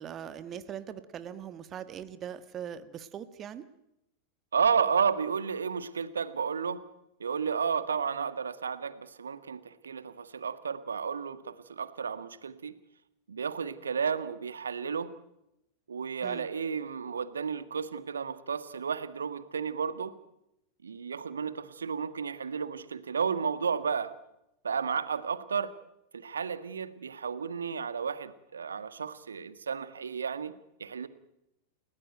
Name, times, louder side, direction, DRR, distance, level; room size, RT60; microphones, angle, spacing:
voice 1, 0.0-3.7 16.2-16.5, right 9 dB, 30° right, 12 dB, 1.5 m, -41 dB
voice 2, 4.5-6.8 7.2-12.7 13.3-15.1 15.9-20.1 20.8-24.1 24.6-25.7 26.1-30.5 30.8-31.1, right 6 dB, 70° right, 13 dB, 1.6 m, -32 dB
30.0 x 17.5 x 9.3 m, 0.86 s
figure-of-eight pair, 90°, 0 cm